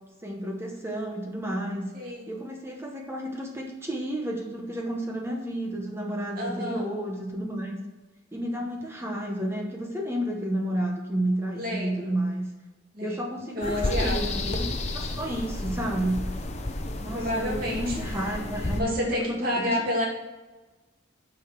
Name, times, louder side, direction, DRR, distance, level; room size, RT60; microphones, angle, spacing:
voice 1, 0.2-1.9 2.3-7.8 8.3-12.5 13.0-16.2 17.0-19.8, right 1 dB, 10° right, 1 dB, 0.9 m, -31 dB
voice 2, 1.9-2.3 6.4-6.8 11.6-12.2 12.9-13.3 13.6-14.3 17.1-18.0 18.8-20.1, left 1 dB, 45° right, -2 dB, 2.3 m, -30 dB
sound 1, 13.6-18.8, left 2 dB, 30° left, 0.7 m, -31 dB
9.1 x 5.1 x 5.9 m, 1.2 s
head